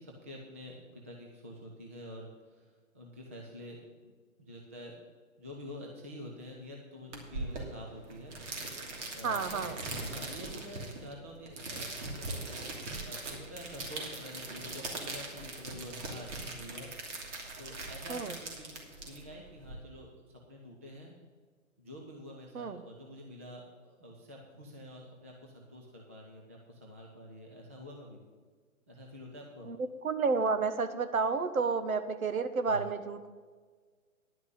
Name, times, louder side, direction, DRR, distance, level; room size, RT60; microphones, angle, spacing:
voice 1, 0.0-4.1 4.4-5.0 5.4-8.3 8.6-8.8 9.1-12.7 13.0-16.9 17.6-21.1 21.8-28.2 28.9-29.7 32.6-32.8, left 1 dB, 10° right, -1 dB, 0.4 m, -48 dB
sound 1, 7.1-19.7, right 2 dB, 60° right, 2.9 m, -41 dB
voice 2, 9.2-9.8 18.1-18.3 22.5-22.8 29.7-29.8 30.0-33.3, right 4 dB, 80° right, 10 dB, 1.3 m, -31 dB
11.0 x 6.1 x 8.4 m, 1.5 s
hypercardioid pair, 145°, 41 cm